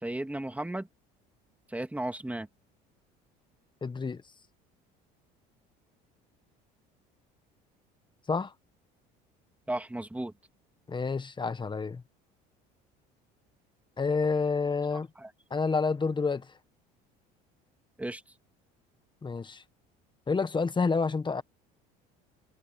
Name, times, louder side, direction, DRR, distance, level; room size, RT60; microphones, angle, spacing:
voice 1, 0.0-0.9 1.7-2.5 9.7-10.3 15.2-15.3 18.0-18.2, right 1 dB, 5° right, 2.9 m, -34 dB
voice 2, 3.8-4.2 8.3-8.5 10.9-12.0 14.0-15.1 15.5-16.5 19.2-19.6 20.3-21.4, left 4 dB, 20° left, 1.5 m, -29 dB
supercardioid pair, 85°, 21 cm